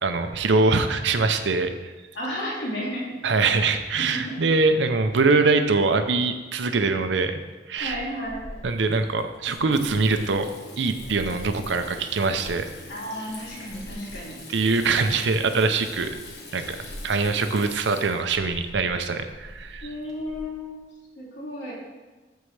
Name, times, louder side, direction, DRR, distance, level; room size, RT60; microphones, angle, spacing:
voice 1, 0.0-1.9 3.2-7.4 7.7-8.0 8.6-12.7 14.5-16.1 16.5-16.8 17.0-19.9, right 3 dB, 70° right, 8 dB, 0.6 m, -23 dB
voice 2, 2.1-3.2 4.1-4.4 7.8-8.6 9.5-9.6 12.9-14.4 19.8-20.8 21.2-21.7, equal, 75° left, -5 dB, 2.5 m, -33 dB
Water tap faucet / Sink (filling or washing), 7.8-20.4, left 1 dB, 60° left, 1.4 m, -42 dB
13.0 x 4.6 x 3.3 m, 1.3 s
head